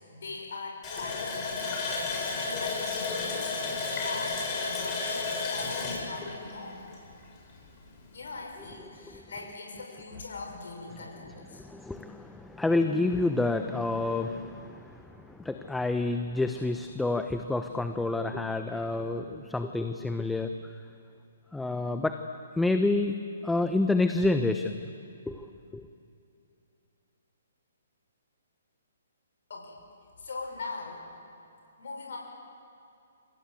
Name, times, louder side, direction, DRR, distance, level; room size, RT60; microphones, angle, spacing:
voice 1, 0.1-1.7 2.5-6.9 8.1-11.7 29.5-29.8 30.2-31.1 31.8-32.2, left 3 dB, 65° left, 0 dB, 6.4 m, -41 dB
Water tap faucet, 0.8-7.3 7.7-7.8 8.2-8.4, left 4 dB, 25° left, 7.7 m, -32 dB
voice 2, 11.5-20.7 21.5-22.1 22.6-23.2 23.4-24.8 25.3-25.9, left 2 dB, 5° left, 7 dB, 1.0 m, -29 dB
28.5 x 25.5 x 7.9 m, 2.7 s
figure-of-eight pair, 130°, 0 cm